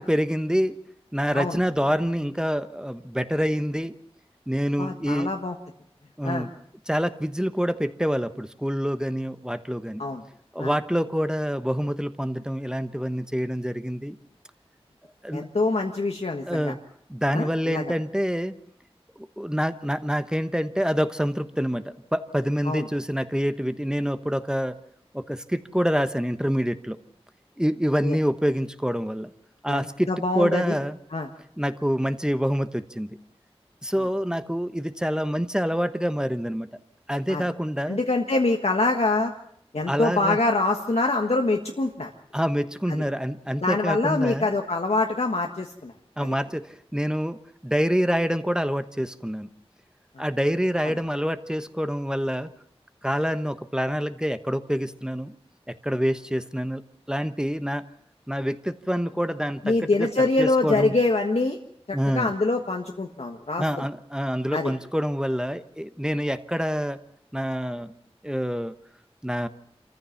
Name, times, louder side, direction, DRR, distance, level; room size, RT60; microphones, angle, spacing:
voice 1, 0.1-0.8 1.1-4.0 4.5-5.3 6.2-6.5 6.9-10.0 10.5-14.2 15.2-15.5 16.5-16.8 17.1-18.6 19.2-24.7 25.1-27.0 27.6-29.3 29.6-30.1 30.3-31.0 31.6-33.1 33.8-36.7 37.1-38.0 39.9-40.4 42.3-44.5 46.2-49.5 50.2-52.5 53.0-55.3 55.7-56.8 57.1-57.8 58.3-60.9 61.9-62.3 63.6-67.0 67.3-67.9 68.2-68.7 69.2-69.5, equal, 5° right, 10 dB, 1.1 m, -26 dB
voice 2, 4.8-5.5 6.2-6.5 10.0-10.2 10.6-10.7 15.3-16.7 17.3-17.8 22.6-22.9 28.0-28.2 29.7-30.7 31.1-31.3 37.3-37.4 37.9-39.3 39.7-42.1 42.9-43.0 43.6-45.9 46.2-46.3 50.2-50.3 59.6-61.6 61.9-63.9 64.5-64.7, left 2 dB, 80° left, 2 dB, 1.5 m, -25 dB
27.0 x 14.5 x 7.1 m, 0.70 s
wide cardioid pair, 50°, 11 cm